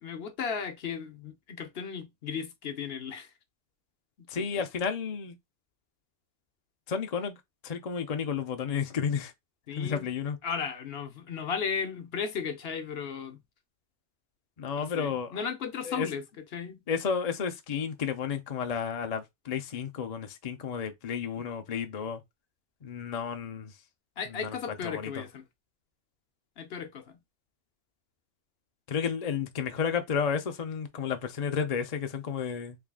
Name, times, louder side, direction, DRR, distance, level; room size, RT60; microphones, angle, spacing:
voice 1, 0.0-3.3 4.5-4.6 9.7-10.1 10.4-13.4 14.7-16.2 16.5-16.8 21.4-21.5 24.2-25.4 26.6-27.2, left 6 dB, 60° left, 0.9 m, -35 dB
voice 2, 4.3-5.4 6.9-7.4 7.6-9.3 9.8-10.4 14.6-15.4 15.8-16.1 16.9-22.2 22.8-23.7 24.3-24.6 24.8-25.2 28.9-32.8, left 6 dB, 45° left, 0.6 m, -32 dB
3.6 x 3.4 x 2.2 m
omnidirectional pair, 1.2 m